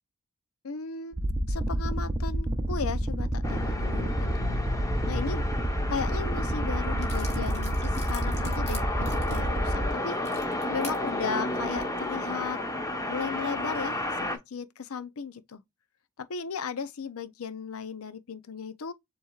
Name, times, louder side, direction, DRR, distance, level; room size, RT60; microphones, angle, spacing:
voice 1, 0.6-4.6 5.1-5.4 5.9-10.2 10.7-12.6 13.1-15.6 16.2-18.9, left 5 dB, 85° left, 0.6 m, -36 dB
sound 1, 1.1-9.9, right 1 dB, 20° right, 0.7 m, -29 dB
sound 2, 3.4-14.4, left 1 dB, 15° left, 1.0 m, -32 dB
sound 3, 7.0-11.0 11.6-11.8, left 3 dB, 35° left, 2.3 m, -45 dB
7.2 x 3.0 x 2.3 m
head